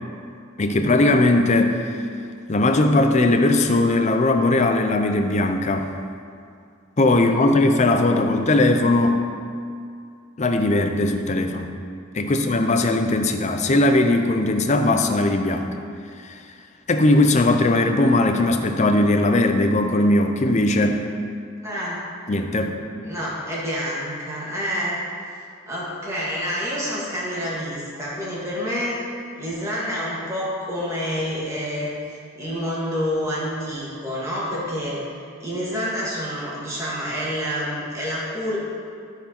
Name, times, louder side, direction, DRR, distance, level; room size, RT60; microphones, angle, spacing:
voice 1, 0.6-1.8 2.5-5.9 7.0-9.2 10.4-11.8 12.1-15.7 16.2-16.4 16.9-21.0 22.3-22.8, left 2 dB, 35° left, 5 dB, 0.6 m, -19 dB
voice 2, 21.6-22.0 23.0-25.0 25.7-29.0 29.4-31.9 32.4-35.0 35.4-38.6, equal, 15° right, -7 dB, 1.9 m, -28 dB
13.0 x 4.6 x 4.4 m, 2.3 s
head